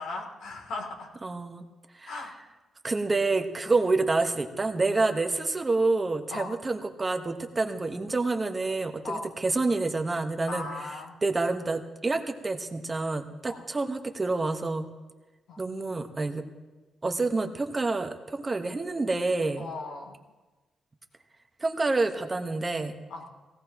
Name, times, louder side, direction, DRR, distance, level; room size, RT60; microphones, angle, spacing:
voice 1, 0.0-1.1 2.1-2.3 6.3-6.5 9.0-9.3 10.5-11.1 13.5-13.6 15.5-15.6 19.6-20.1 23.1-23.3, left 3 dB, 85° left, 0 dB, 2.8 m, -37 dB
voice 2, 1.2-1.6 1.9-2.2 2.8-10.7 11.2-14.9 15.6-16.5 17.0-19.7 21.6-23.0, right 3 dB, 25° right, 6 dB, 1.2 m, -28 dB
18.0 x 17.0 x 3.0 m, 1.2 s
cardioid pair, 80°, 0 cm